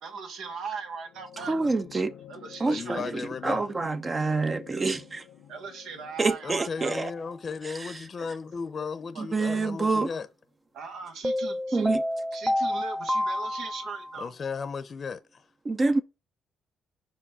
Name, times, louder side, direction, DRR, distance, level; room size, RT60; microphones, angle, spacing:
voice 1, 0.0-1.5 2.3-3.0 5.5-7.0 8.2-8.3 9.1-9.6 10.7-11.9 12.3-14.3, right 5 dB, 80° right, 1.4 m, -39 dB
sound 1, 1.0-9.7 10.9-11.0, left 10 dB, 80° left, 0.8 m, -51 dB
voice 2, 1.4-2.1 2.6-5.2 6.2-7.1 7.6-7.9 9.2-10.1 11.7-12.0 15.6-16.0, right 3 dB, 30° right, 0.7 m, -27 dB
voice 3, 2.6-3.7 6.4-10.3 14.2-15.5, left 5 dB, 45° left, 0.7 m, -35 dB
sound 2, 6.8-7.1 11.2-14.3, left 1 dB, ahead, 0.4 m, -29 dB
5.3 x 5.0 x 4.8 m
cardioid pair, 90°, 0 cm